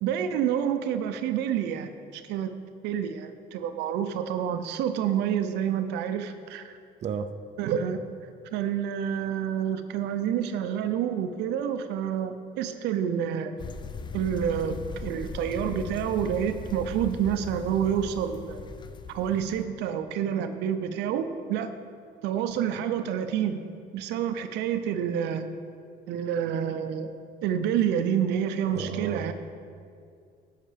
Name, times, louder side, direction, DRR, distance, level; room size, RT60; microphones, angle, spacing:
voice 1, 0.0-2.5 2.8-6.8 7.6-8.0 8.5-13.6 14.1-18.6 19.1-21.7 22.2-23.7 23.9-25.5 26.1-27.1 27.4-29.3, right 9 dB, 85° right, 9 dB, 0.6 m, -28 dB
sound 1, 13.6-19.7, left 4 dB, 25° left, 0.4 m, -39 dB
voice 2, 28.7-29.3, right 7 dB, 40° right, 9 dB, 0.5 m, -33 dB
10.0 x 5.7 x 5.0 m, 2.3 s
cardioid pair, 110°, 17 cm